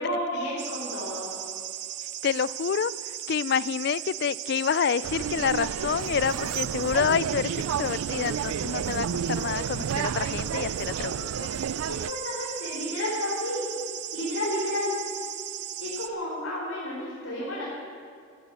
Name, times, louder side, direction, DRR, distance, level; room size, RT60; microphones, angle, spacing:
voice 1, 0.0-1.3 11.9-13.6 14.1-14.9 15.8-17.6, left 1 dB, 85° left, -8 dB, 4.8 m, -31 dB
sound 1, 0.6-16.1, right 12 dB, 50° right, 0.7 m, -37 dB
voice 2, 2.2-2.9 3.3-11.5, left 7 dB, 50° left, 19 dB, 0.3 m, -28 dB
sound 2, 5.0-12.1, right 7 dB, 85° right, 0.3 m, -31 dB
13.0 x 11.5 x 8.9 m, 2.3 s
head